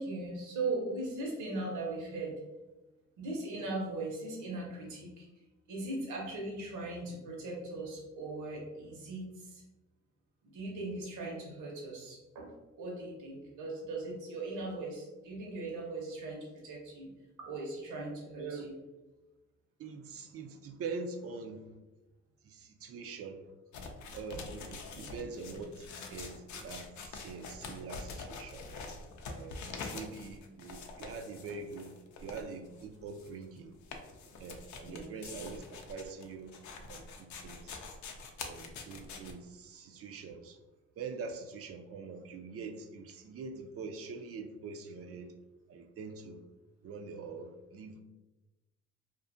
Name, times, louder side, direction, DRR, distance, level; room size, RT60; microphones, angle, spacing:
voice 1, 0.0-2.4 3.2-5.3 5.7-9.6 10.4-17.1 17.4-18.7 24.9-25.2 29.6-29.9 34.8-35.1, right 2 dB, 80° right, -2 dB, 0.9 m, -39 dB
voice 2, 18.4-18.7 19.8-21.7 22.4-23.4 24.1-28.7 29.3-31.9 32.2-33.8 34.4-35.6 35.9-36.5 36.9-37.7 38.4-40.6 41.0-45.3 45.7-46.4 46.8-48.0, right 4 dB, 50° right, 5 dB, 0.4 m, -44 dB
sound 1, 23.7-39.3, left 4 dB, 70° left, 0.5 m, -45 dB
2.5 x 2.4 x 2.5 m, 1.1 s
cardioid pair, 90°, 30 cm